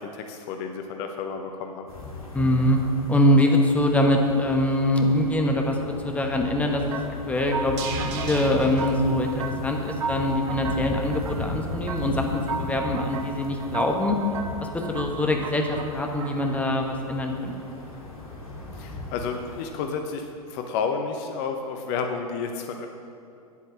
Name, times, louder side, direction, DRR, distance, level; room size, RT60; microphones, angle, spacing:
voice 1, 0.0-1.9 18.7-22.9, left 5 dB, 40° left, 5 dB, 0.9 m, -31 dB
sound 1, 1.9-19.7, left 2 dB, 70° left, 2.4 m, -37 dB
voice 2, 2.3-2.8 3.1-5.7 6.0-7.8 8.1-14.2 14.7-17.5, left 1 dB, 5° left, 2 dB, 1.2 m, -23 dB
sound 2, 6.2-10.4 10.8-10.9, right 4 dB, 45° right, 1.5 m, -38 dB
sound 3, 6.9-16.8, right 4 dB, 65° right, 1.0 m, -36 dB
9.2 x 8.3 x 7.3 m, 2.5 s
figure-of-eight pair, 100°, 19 cm